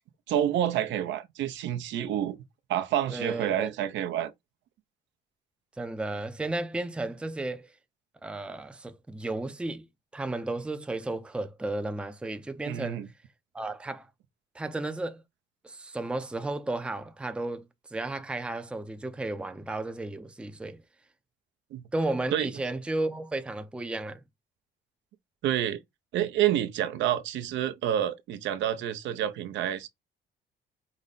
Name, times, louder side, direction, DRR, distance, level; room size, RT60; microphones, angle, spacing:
voice 1, 0.3-2.4 2.7-4.3 12.7-13.1 21.7-21.8 22.3-22.5 25.4-25.8 26.1-29.9, right 11 dB, 75° right, 0.7 m, -28 dB
voice 2, 3.1-3.7 5.8-7.7 8.2-9.9 10.1-13.0 13.5-14.1 14.5-15.2 15.6-20.8 21.9-24.2, right 2 dB, 5° right, 0.5 m, -33 dB
5.0 x 2.1 x 3.9 m
cardioid pair, 125°, 19 cm